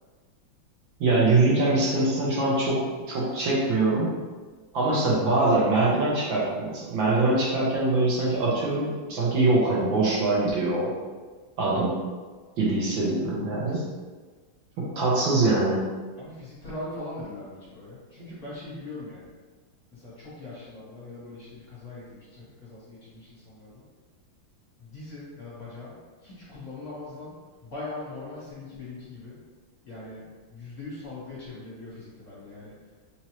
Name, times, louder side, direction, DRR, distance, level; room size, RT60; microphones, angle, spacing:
voice 1, 1.0-4.1 4.7-10.9 11.6-12.0 12.6-13.8 14.8-15.9, right 2 dB, 70° right, -6 dB, 1.4 m, -23 dB
voice 2, 16.2-19.3 19.9-23.8 24.8-26.0 26.2-27.4 27.6-29.4 29.8-30.2 30.5-32.7, left 2 dB, 45° left, -10 dB, 1.7 m, -41 dB
4.2 x 2.6 x 3.0 m, 1.4 s
omnidirectional pair, 2.4 m